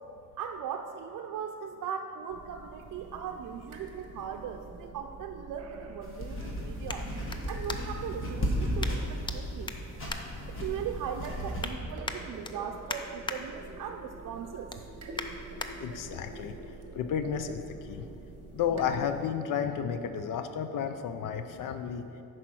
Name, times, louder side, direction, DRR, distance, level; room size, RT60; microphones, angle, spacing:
voice 1, 0.4-7.1 7.5-9.7 10.5-14.7, right 7 dB, 75° right, 2 dB, 0.5 m, -39 dB
sound 1, 2.3-19.2, right 3 dB, 50° right, 0.9 m, -47 dB
sound 2, 6.0-11.7, equal, 40° left, 1.3 m, -34 dB
sound 3, 6.9-8.2 8.8-9.4 9.6-11.0 11.3-11.7 12.0-13.4 13.8-14.1 14.4-15.7 16.3-16.4, left 3 dB, 15° left, 0.3 m, -40 dB
voice 2, 15.8-18.2 18.5-22.1, left 7 dB, 80° left, 8 dB, 0.5 m, -32 dB
10.5 x 4.5 x 6.1 m, 2.6 s
wide cardioid pair, 180°, 32 cm